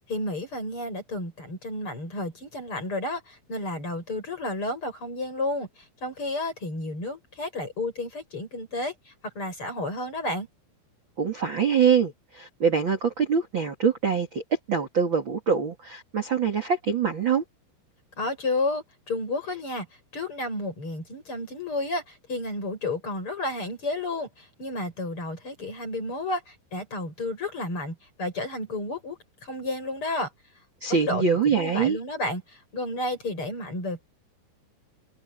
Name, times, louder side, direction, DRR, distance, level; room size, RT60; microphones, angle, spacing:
voice 1, 0.1-5.7 6.0-8.9 9.3-10.5 18.2-19.9 20.1-30.3 30.9-34.0, left 2 dB, 25° left, 8.6 m, -31 dB
voice 2, 11.2-17.4 30.8-32.0, right 6 dB, 40° right, 1.8 m, -24 dB
omnidirectional pair, 5.8 m